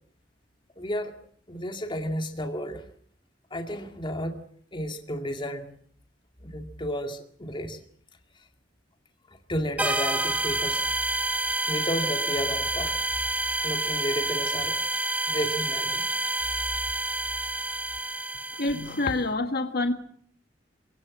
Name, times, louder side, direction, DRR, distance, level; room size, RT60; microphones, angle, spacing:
voice 1, 0.8-1.2 1.5-2.8 3.5-4.4 4.7-5.8 6.4-7.8 8.4-8.5 9.3-10.9 11.7-13.0 13.6-14.8 15.3-16.0, equal, 25° left, 4 dB, 2.2 m, -32 dB
sound 1, 9.8-19.2, right 2 dB, 10° right, 1.1 m, -28 dB
voice 2, 18.6-19.9, left 2 dB, 55° left, 7 dB, 1.6 m, -26 dB
26.0 x 17.0 x 7.4 m, 0.62 s
head